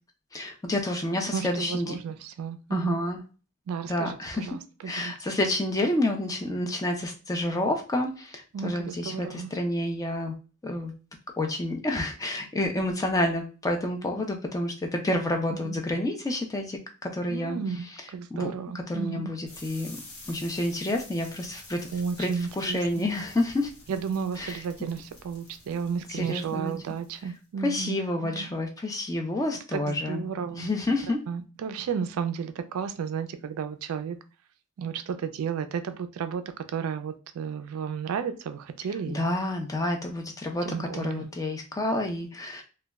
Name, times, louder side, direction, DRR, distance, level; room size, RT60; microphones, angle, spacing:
voice 1, 0.3-1.9 2.7-3.2 3.9-4.5 4.9-10.3 10.6-10.9 11.4-17.6 18.3-18.5 18.7-20.0 20.3-21.8 22.2-22.3 22.6-23.7 24.4-24.9 26.1-26.7 27.6-30.3 30.5-31.2 39.1-42.6, left 1 dB, 15° left, 0.4 m, -29 dB
voice 2, 1.3-3.0 3.7-5.1 8.5-9.5 15.5-15.8 17.3-17.9 18.1-19.3 21.9-23.0 23.9-28.5 29.7-30.7 31.3-34.2 34.8-39.3 40.6-41.3, right 6 dB, 70° right, 0.3 m, -33 dB
sound 1, 19.5-27.4, left 2 dB, 70° left, 1.0 m, -49 dB
2.2 x 2.0 x 3.4 m
head